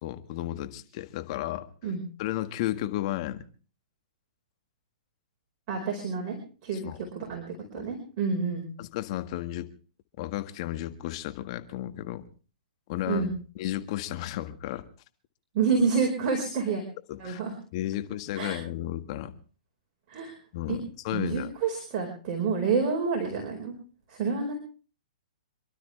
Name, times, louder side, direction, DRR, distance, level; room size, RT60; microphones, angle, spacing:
voice 1, 0.0-1.7 2.2-3.4 6.8-7.0 7.8-7.9 8.8-9.7 10.2-12.2 12.9-14.8 17.1-17.4 17.7-19.3 20.5-21.5, left 14 dB, 45° left, 9 dB, 1.7 m, -33 dB
voice 2, 5.7-6.4 6.6-8.7 13.1-13.3 15.5-16.8 17.2-17.5 18.3-18.6 20.1-20.3 20.7-20.8 21.1-23.7 24.1-24.5, right 5 dB, 35° right, 1 dB, 4.8 m, -28 dB
28.0 x 12.5 x 3.4 m, 0.37 s
hypercardioid pair, 125°, 4 cm